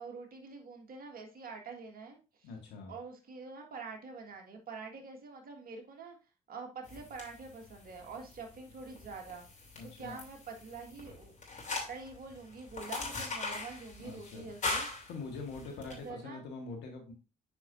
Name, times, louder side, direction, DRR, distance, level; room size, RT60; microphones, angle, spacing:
voice 1, 0.0-2.5 2.9-6.2 6.5-9.5 10.0-11.3 11.9-14.9 15.8-16.4, right 4 dB, 55° right, 3 dB, 1.8 m, -46 dB
voice 2, 2.4-2.9 9.7-10.2 14.0-14.5 15.1-17.1, left 4 dB, 75° left, 2 dB, 1.9 m, -44 dB
sound 1, 6.8-16.0, left 3 dB, 45° left, 3.2 m, -41 dB
8.9 x 4.7 x 2.7 m, 0.31 s
hypercardioid pair, 50°, 18 cm